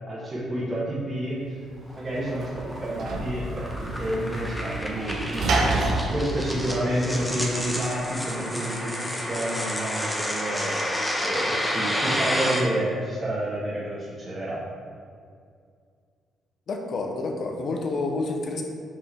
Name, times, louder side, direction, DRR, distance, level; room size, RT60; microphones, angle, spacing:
voice 1, 0.1-1.6 2.0-10.8 11.2-14.6, right 1 dB, 30° right, -9 dB, 1.4 m, -29 dB
Sliding door / Slam, 1.7-7.6, right 2 dB, 65° right, 0.8 m, -29 dB
sound 1, 1.9-12.6, equal, 10° left, 1.0 m, -30 dB
voice 2, 16.7-18.6, left 3 dB, 55° left, 3 dB, 0.8 m, -29 dB
5.5 x 4.9 x 3.5 m, 2.2 s
cardioid pair, 90°, 0 cm